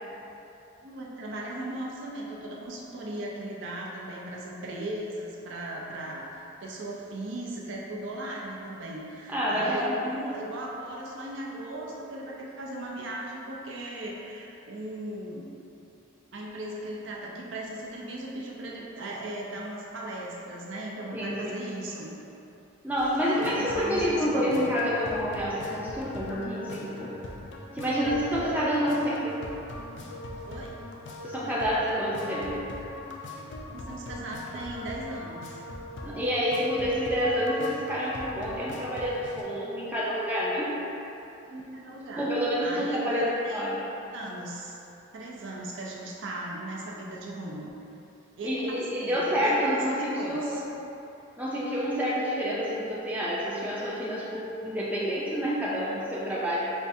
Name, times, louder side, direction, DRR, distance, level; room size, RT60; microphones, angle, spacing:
voice 1, 0.8-15.5 16.3-22.1 23.3-24.7 30.5-30.7 33.7-35.6 41.5-42.3 42.6-43.7 44.1-44.8 45.1-47.7 48.4-50.6, right 1 dB, 70° right, -3 dB, 0.5 m, -37 dB
voice 2, 9.3-10.1 21.1-21.6 22.8-27.1 27.7-29.4 31.2-32.6 36.0-40.7 42.0-43.8 48.4-50.6 51.4-56.6, equal, 10° right, -7 dB, 0.4 m, -28 dB
sound 1, 23.0-39.4, left 2 dB, 60° left, 0.4 m, -41 dB
5.3 x 2.3 x 2.6 m, 2.9 s
head